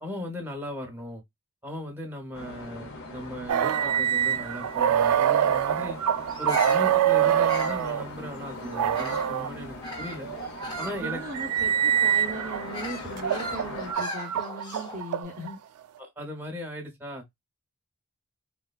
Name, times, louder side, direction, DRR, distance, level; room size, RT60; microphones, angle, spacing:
voice 1, 0.0-1.2 1.6-6.0 6.4-10.3 10.8-11.2 16.0-17.2, left 1 dB, 10° right, 0.9 m, -37 dB
sound 1, 2.3-13.9, left 2 dB, 60° left, 0.8 m, -41 dB
sound 2, 3.5-8.0 8.7-9.5 10.2-12.6 13.2-15.5, right 9 dB, 85° right, 0.3 m, -25 dB
Bird vocalization bird call bird song, 6.3-9.4 9.8-15.1, left 1 dB, 20° left, 0.8 m, -39 dB
voice 2, 10.9-15.6, right 1 dB, 35° right, 0.6 m, -38 dB
3.6 x 2.2 x 2.4 m
head